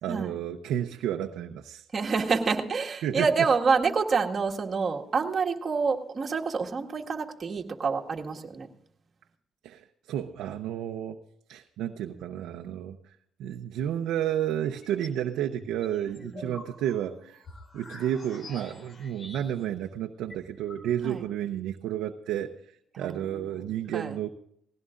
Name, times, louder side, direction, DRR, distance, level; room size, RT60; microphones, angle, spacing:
voice 1, 0.0-1.8 3.0-3.3 9.6-11.2 11.5-17.4 17.7-24.3, right 10 dB, 85° right, 4 dB, 0.8 m, -31 dB
voice 2, 1.9-8.7 16.3-16.6 21.0-21.2 23.0-23.4 23.9-24.1, right 5 dB, 40° right, 1 dB, 1.8 m, -27 dB
sound 1, 14.6-15.2 15.6-19.8 20.0-20.1 20.3-21.3, left 2 dB, 40° left, 2.9 m, -47 dB
20.0 x 16.5 x 2.6 m, 0.69 s
cardioid pair, 90°, 0 cm